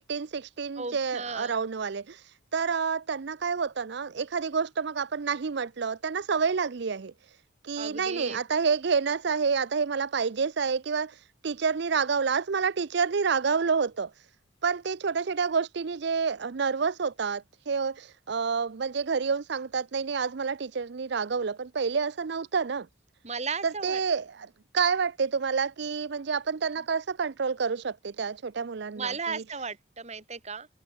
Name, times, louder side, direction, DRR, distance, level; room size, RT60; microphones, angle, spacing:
voice 1, 0.0-2.2 2.5-7.1 7.6-11.1 11.4-14.1 14.6-22.9 23.6-29.4, right 5 dB, 55° right, 0.5 m, -28 dB
voice 2, 0.8-1.5 7.8-8.4 23.2-24.0 29.0-30.7, right 5 dB, 35° right, 2.1 m, -35 dB
head